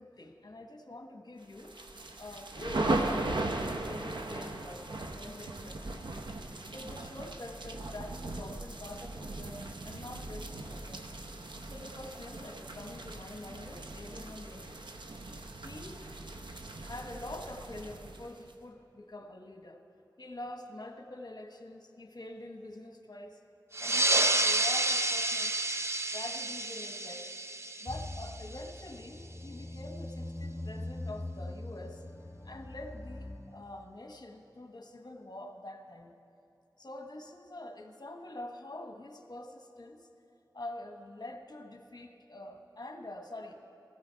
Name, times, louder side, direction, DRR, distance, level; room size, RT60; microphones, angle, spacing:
voice 1, 0.0-1.9 2.2-6.1 6.7-11.0 11.6-14.9 15.6-16.0 16.4-16.5 16.8-19.8 20.2-23.4 23.8-25.6 26.1-27.3 27.8-32.0 32.4-36.1 36.8-40.1 40.5-43.7, left 1 dB, 60° left, 4 dB, 1.2 m, -45 dB
sound 1, 1.6-18.5, right 2 dB, 85° right, 0.8 m, -38 dB
sound 2, 23.7-28.8, right 2 dB, 35° right, 0.6 m, -30 dB
sound 3, 27.9-33.4, left 1 dB, 30° left, 3.2 m, -42 dB
17.0 x 14.0 x 4.6 m, 2.7 s
wide cardioid pair, 60°, 8 cm